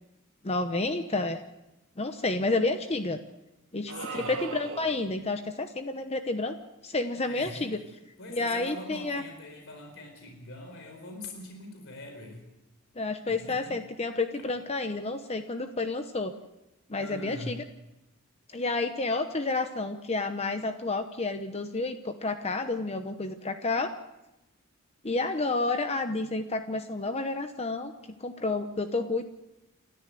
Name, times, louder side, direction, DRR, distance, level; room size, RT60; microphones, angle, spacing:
voice 1, 0.4-1.4 2.0-3.2 3.7-6.5 6.8-7.8 8.3-9.2 13.0-16.3 16.9-17.6 18.5-23.9 25.0-27.9 28.2-29.2, left 3 dB, 30° left, 8 dB, 0.9 m, -30 dB
voice 2, 3.9-4.4 7.2-7.8 8.2-12.5 13.3-13.8 17.0-17.7, left 2 dB, 60° left, 3 dB, 4.3 m, -43 dB
sound 1, 3.9-5.2, right 4 dB, 65° right, 1.5 m, -38 dB
29.0 x 13.5 x 7.7 m, 0.97 s
head